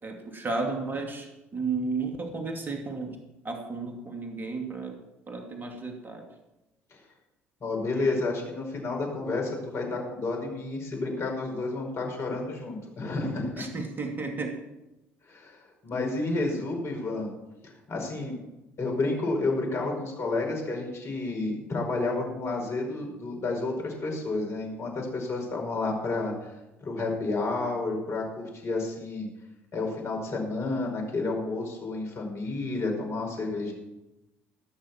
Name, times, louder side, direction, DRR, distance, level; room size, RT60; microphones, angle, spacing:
voice 1, 0.0-3.2 3.4-5.0 5.3-6.3 13.6-14.5, right 4 dB, 30° right, 3 dB, 2.9 m, -33 dB
voice 2, 7.6-13.6 15.2-17.3 17.6-18.4 18.8-26.5 26.8-29.3 29.7-33.7, left 2 dB, 45° left, 1 dB, 5.6 m, -30 dB
18.5 x 6.5 x 7.4 m, 0.98 s
hypercardioid pair, 60°, 6 cm